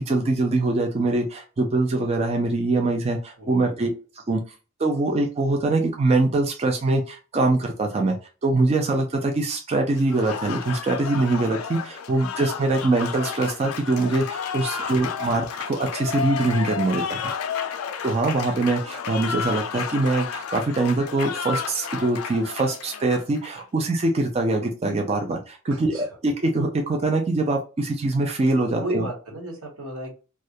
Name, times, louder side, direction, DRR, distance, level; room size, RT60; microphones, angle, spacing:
voice 1, 0.0-3.9 4.3-4.4 4.8-8.2 8.4-17.2 18.0-29.1, right 2 dB, 30° right, 2 dB, 0.4 m, -23 dB
voice 2, 3.4-3.9 15.3-15.4 25.7-26.1 28.7-30.1, right 1 dB, 90° right, 1 dB, 0.9 m, -34 dB
Applause, 10.0-23.6, left 7 dB, 75° left, 0.3 m, -32 dB
2.3 x 2.1 x 2.7 m, 0.34 s
head